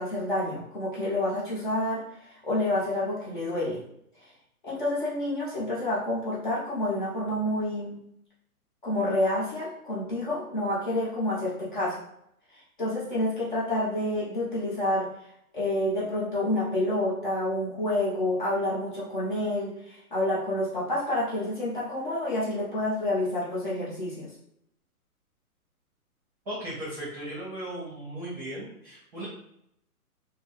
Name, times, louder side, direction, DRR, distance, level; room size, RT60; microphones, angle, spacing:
voice 1, 0.0-2.0 2.4-3.8 4.6-8.0 8.8-12.0 12.8-15.1 15.5-24.3, left 1 dB, 35° left, -7 dB, 0.9 m, -28 dB
voice 2, 26.4-29.3, right 1 dB, 15° right, -10 dB, 0.9 m, -37 dB
4.0 x 2.2 x 3.2 m, 0.74 s
hypercardioid pair, 175°, 45 cm